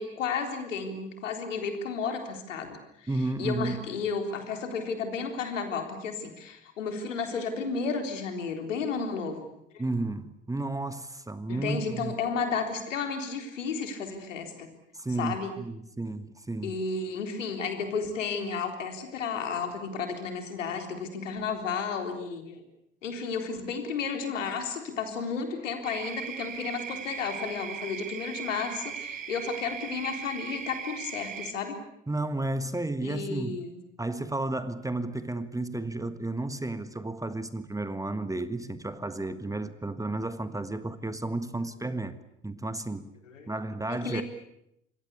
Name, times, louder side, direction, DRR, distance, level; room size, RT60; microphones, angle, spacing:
voice 1, 0.0-3.1 3.4-9.5 9.7-9.8 11.5-14.7 15.2-15.5 16.6-22.6 23.0-31.8 33.0-33.8 43.3-43.5 43.9-44.2, left 5 dB, 75° left, 3.9 m, -33 dB
voice 2, 3.1-3.8 9.8-12.2 14.9-16.8 32.1-33.6 34.0-42.2 42.4-43.1 43.5-44.2, right 2 dB, 10° right, 1.6 m, -32 dB
sound 1, 25.8-31.5, right 8 dB, 80° right, 1.9 m, -38 dB
26.5 x 23.0 x 8.3 m
figure-of-eight pair, 65°, 38 cm